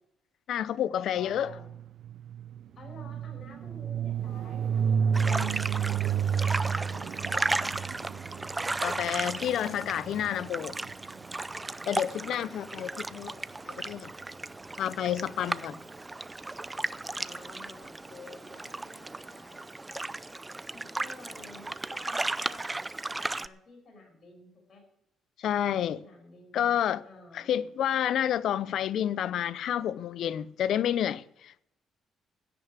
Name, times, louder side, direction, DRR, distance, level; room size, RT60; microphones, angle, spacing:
voice 1, 0.5-1.5 5.3-5.6 8.8-10.8 11.9-13.3 13.8-14.1 14.8-15.7 25.4-26.0 26.5-27.0 27.3-31.6, left 10 dB, 75° left, 0.6 m, -29 dB
voice 2, 1.1-1.7 2.8-6.2 6.6-8.7 9.2-9.8 11.8-12.5 13.2-13.4 15.4-15.8 17.0-19.7 20.7-24.8 26.0-26.7 27.0-27.7, left 3 dB, 50° left, 6.1 m, -52 dB
sound 1, 1.4-11.3, right 7 dB, 70° right, 0.7 m, -31 dB
sound 2, 5.1-23.5, right 2 dB, 15° right, 0.5 m, -35 dB
16.0 x 6.7 x 8.9 m
cardioid pair, 90°, 0 cm